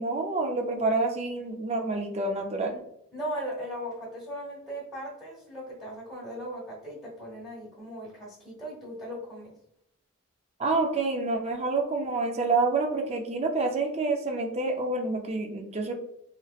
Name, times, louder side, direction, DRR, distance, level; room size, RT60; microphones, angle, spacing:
voice 1, 0.0-2.8 10.6-15.9, right 3 dB, 30° right, 3 dB, 0.3 m, -28 dB
voice 2, 3.1-9.5, equal, ahead, -9 dB, 1.0 m, -38 dB
3.1 x 2.8 x 2.3 m, 0.75 s
head